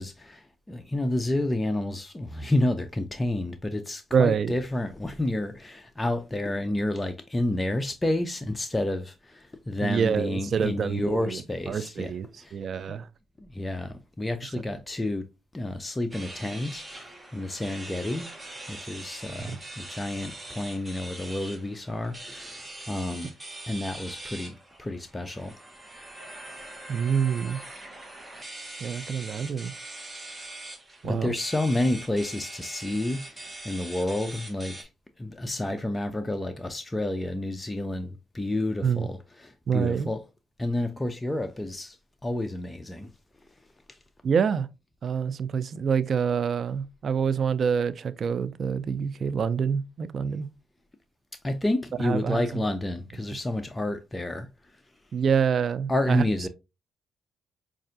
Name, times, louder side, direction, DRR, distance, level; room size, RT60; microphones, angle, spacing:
voice 1, 0.0-12.1 12.4-12.6 12.9-13.0 13.4-15.3 15.5-18.3 18.7-23.3 23.7-25.6 31.0-34.9 35.2-40.2 40.6-42.0 42.2-43.1 43.9-44.0 51.4-54.5 55.9-56.5, left 1 dB, 15° left, 0.4 m, -30 dB
voice 2, 4.1-4.6 9.8-11.4 11.7-13.1 19.4-19.6 26.9-27.6 28.8-29.7 31.0-31.3 38.8-39.1 39.7-40.1 44.2-44.7 45.0-50.5 52.0-52.6 55.1-56.2, right 6 dB, 50° right, 0.3 m, -26 dB
sound 1, 16.1-34.8, right 2 dB, 15° right, 1.0 m, -42 dB
5.3 x 2.4 x 2.5 m
cardioid pair, 90°, 0 cm